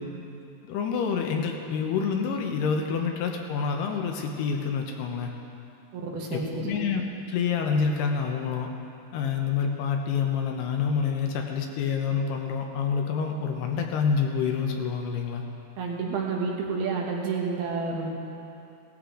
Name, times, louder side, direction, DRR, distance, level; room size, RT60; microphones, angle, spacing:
voice 1, 0.7-5.3 6.3-7.0 7.3-8.7 9.1-15.4, left 6 dB, 80° left, 2 dB, 2.8 m, -27 dB
voice 2, 5.9-6.7 15.8-18.1, right 4 dB, 70° right, -1 dB, 3.1 m, -30 dB
17.0 x 14.0 x 3.8 m, 2.7 s
omnidirectional pair, 4.9 m